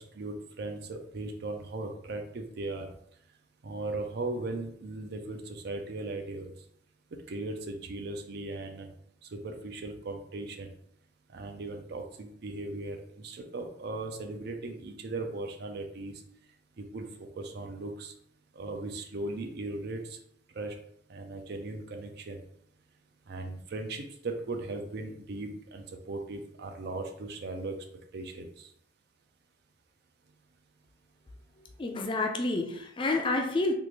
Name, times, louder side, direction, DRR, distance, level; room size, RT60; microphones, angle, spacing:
voice 1, 0.1-2.9 3.6-6.5 7.1-8.9 9.3-10.7 11.3-16.1 16.8-18.1 18.5-20.2 20.5-20.7 21.1-22.4 23.3-27.7 28.1-28.7, right 2 dB, 55° right, 4 dB, 0.5 m, -38 dB
voice 2, 31.8-33.7, left 2 dB, 25° left, 3 dB, 0.4 m, -29 dB
3.5 x 2.4 x 3.0 m, 0.69 s
head